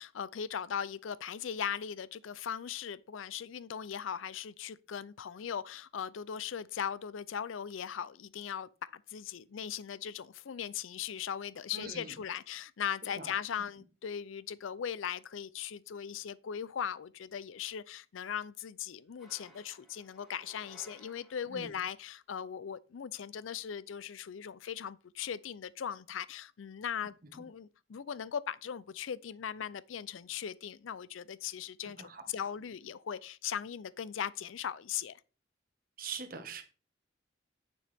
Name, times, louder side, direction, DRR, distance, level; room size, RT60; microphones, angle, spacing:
voice 1, 0.0-35.2, left 8 dB, 90° left, 0.4 m, -39 dB
voice 2, 11.7-12.1 13.2-13.3 21.5-21.7 32.0-32.2 36.0-36.6, right 5 dB, 45° right, 1.4 m, -42 dB
sound 1, 19.2-21.8, equal, ahead, 2.1 m, -59 dB
9.2 x 6.8 x 3.5 m
head